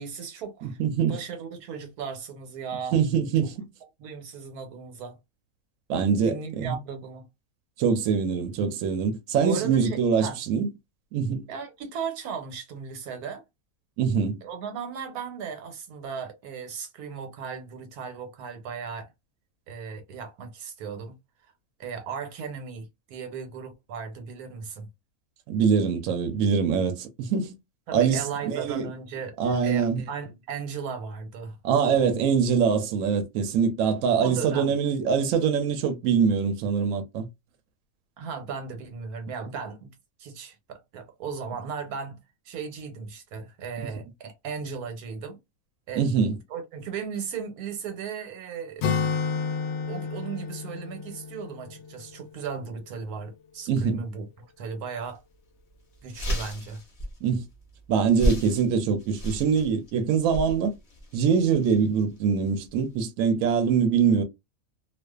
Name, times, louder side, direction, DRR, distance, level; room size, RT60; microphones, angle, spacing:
voice 1, 0.0-0.8 1.1-3.0 4.0-5.2 6.2-7.3 9.4-10.4 11.5-13.4 14.4-19.1 19.7-21.2 21.4-21.5 21.8-24.9 27.9-29.4 29.6-31.6 31.8-32.1 34.2-34.7 38.2-39.9 40.2-42.2 42.5-45.4 45.9-46.1 46.5-48.9 49.9-55.2 56.0-56.8, right 6 dB, 90° right, 1.2 m, -36 dB
voice 2, 0.6-1.2 2.9-3.7 5.9-6.7 7.8-10.7 11.1-11.4 14.0-14.4 25.5-27.6 27.9-28.9 29.4-30.0 31.6-37.3 46.0-46.3 53.7-54.0 57.2-57.4 57.9-60.7 61.1-64.2, right 6 dB, 70° right, 0.9 m, -24 dB
Acoustic guitar, 48.8-52.5, left 5 dB, 65° left, 0.8 m, -30 dB
sound 1, 55.0-55.2 55.6-55.7 55.9-63.0, equal, 35° left, 0.6 m, -33 dB
2.4 x 2.3 x 2.2 m
omnidirectional pair, 1.5 m